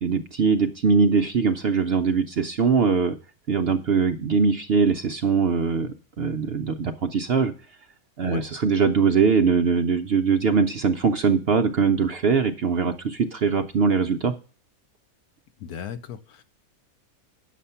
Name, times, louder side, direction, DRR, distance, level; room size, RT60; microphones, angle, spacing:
voice 1, 0.0-3.2 3.5-7.5 8.2-14.3, right 5 dB, 60° right, 6 dB, 0.6 m, -22 dB
voice 2, 15.6-16.4, left 8 dB, 85° left, 10 dB, 1.3 m, -36 dB
9.2 x 6.7 x 5.6 m, 0.39 s
omnidirectional pair, 1.6 m